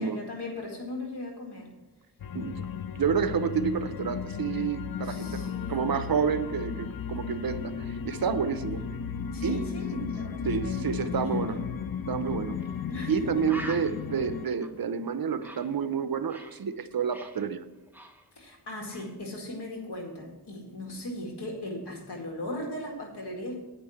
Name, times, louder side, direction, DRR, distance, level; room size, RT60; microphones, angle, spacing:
voice 1, 0.0-1.7 5.0-6.0 9.3-11.7 12.9-13.5 18.4-23.6, left 1 dB, 80° left, 1 dB, 2.2 m, -38 dB
sound 1, 2.2-14.5, left 7 dB, 60° left, 0.5 m, -35 dB
voice 2, 2.3-2.7 2.9-8.8 9.4-9.6 10.4-11.6 12.1-12.6 13.1-17.6, right 6 dB, 60° right, 12 dB, 0.7 m, -29 dB
Bird, 12.6-12.8 13.1-13.2 13.5-16.6 16.9-18.6 18.9-19.2, equal, 5° right, 1.1 m, -45 dB
8.9 x 5.4 x 7.7 m, 1.1 s
wide cardioid pair, 65°, 40 cm